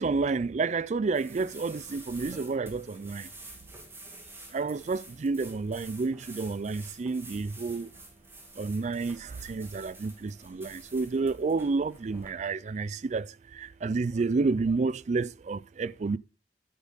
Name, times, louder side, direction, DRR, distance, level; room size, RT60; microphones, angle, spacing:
voice 1, 0.0-3.3 4.5-7.9 8.6-13.3 13.6-16.2, right 4 dB, 40° right, 0.4 m, -30 dB
sound 1, 1.1-12.3, right 2 dB, 15° right, 2.3 m, -49 dB
9.5 x 7.4 x 3.9 m
head